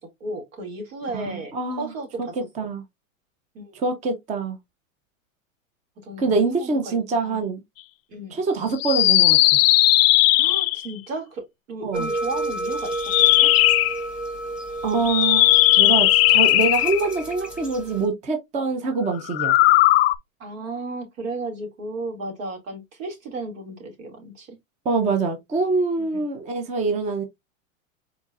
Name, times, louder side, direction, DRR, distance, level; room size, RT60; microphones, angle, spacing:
voice 1, 0.2-2.3 3.5-3.8 6.0-7.4 8.1-8.4 10.4-13.5 20.4-24.6 26.0-26.2, right 2 dB, 70° right, 2.5 m, -34 dB
voice 2, 1.1-1.9 2.2-2.8 3.7-4.6 6.2-7.6 8.3-9.4 11.8-12.1 14.8-19.6 24.8-27.2, right 4 dB, 20° right, 0.6 m, -25 dB
sound 1, 8.8-10.9 12.9-14.0 15.0-17.2 19.2-20.2, left 18 dB, 50° left, 0.4 m, -17 dB
sound 2, 11.9-18.1, right 2 dB, 5° right, 1.5 m, -31 dB
4.7 x 4.1 x 2.5 m
hypercardioid pair, 130°, 41 cm